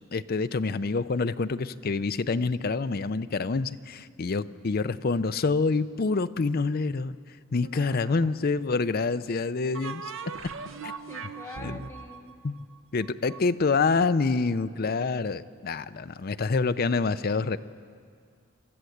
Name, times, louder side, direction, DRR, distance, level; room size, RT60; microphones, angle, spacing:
voice 1, 0.1-10.1 10.8-10.9 11.6-11.8 12.4-12.6 12.9-17.6, left 4 dB, 45° left, 12 dB, 0.5 m, -27 dB
sound 1, 7.6-8.5 9.7-13.4, right 5 dB, 65° right, 0.9 m, -40 dB
voice 2, 7.7-8.3 10.7-12.4, left 2 dB, 10° left, 3 dB, 1.2 m, -46 dB
26.5 x 13.0 x 7.9 m, 2.2 s
head